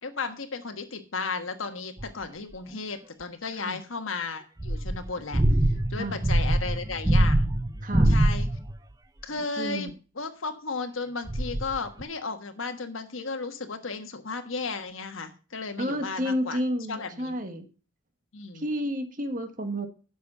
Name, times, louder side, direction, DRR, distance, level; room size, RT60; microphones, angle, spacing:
voice 1, 0.0-5.4 5.9-7.5 8.1-8.5 9.2-16.6 16.9-17.4 18.3-18.6, left 4 dB, 85° left, 6 dB, 1.4 m, -34 dB
sound 1, 2.0-2.1 4.6-8.8 11.3-12.0, right 1 dB, 20° right, 0.7 m, -23 dB
voice 2, 9.6-9.9 15.8-17.7 18.5-19.9, equal, 40° right, 7 dB, 1.5 m, -31 dB
11.0 x 7.2 x 5.5 m, 0.35 s
head